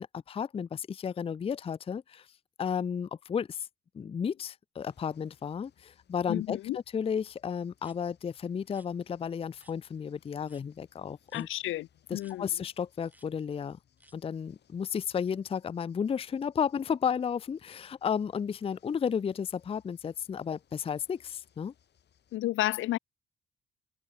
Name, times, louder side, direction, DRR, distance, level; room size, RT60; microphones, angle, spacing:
voice 1, 0.0-2.3 2.6-3.7 3.9-6.6 6.9-11.5 12.1-13.8 14.1-21.7, left 7 dB, 30° left, 0.5 m, -33 dB
sound 1, 4.8-22.4, left 8 dB, 60° left, 6.7 m, -68 dB
voice 2, 6.3-6.8 11.3-12.5 22.3-23.0, left 15 dB, 80° left, 0.9 m, -32 dB
sound 2, 7.8-8.0 8.7-8.9 9.6-9.8 10.4-10.7 11.3-11.5 12.2-12.4 13.1-13.3 14.0-14.2, right 1 dB, 10° right, 5.0 m, -60 dB
cardioid pair, 90°, 20 cm